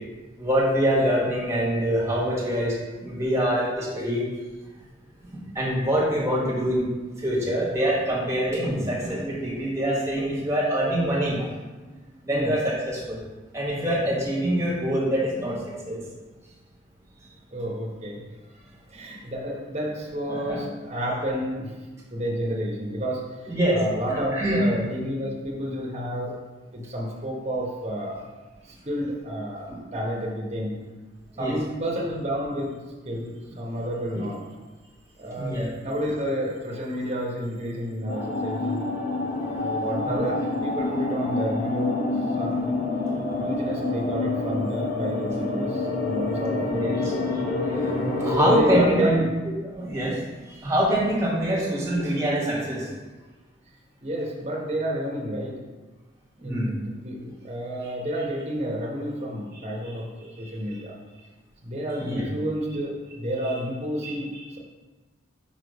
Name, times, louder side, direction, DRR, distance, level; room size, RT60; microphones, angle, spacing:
voice 1, 0.4-2.7 3.0-4.2 5.5-6.9 7.2-11.5 12.2-13.2 13.5-15.6 15.8-16.0 20.3-20.6 23.5-23.8 24.3-24.7 31.4-31.6 35.4-35.7 40.0-40.2 46.7-49.2 49.7-50.2 50.5-52.9 56.4-56.7 60.4-60.5 62.1-62.3 64.0-64.2, equal, 15° right, -5 dB, 1.5 m, -25 dB
voice 2, 17.5-18.3 18.5-21.7 22.1-26.3 26.7-28.2 28.6-30.7 31.4-32.8 33.0-34.4 35.2-38.9 39.6-42.0 42.3-42.7 43.4-47.1 48.1-49.3 54.0-55.6 56.4-61.0 61.6-64.6, equal, 35° right, -2 dB, 1.1 m, -30 dB
sound 1, 38.1-48.8, left 2 dB, 55° left, 1.3 m, -27 dB
5.7 x 3.1 x 5.3 m, 1.3 s
head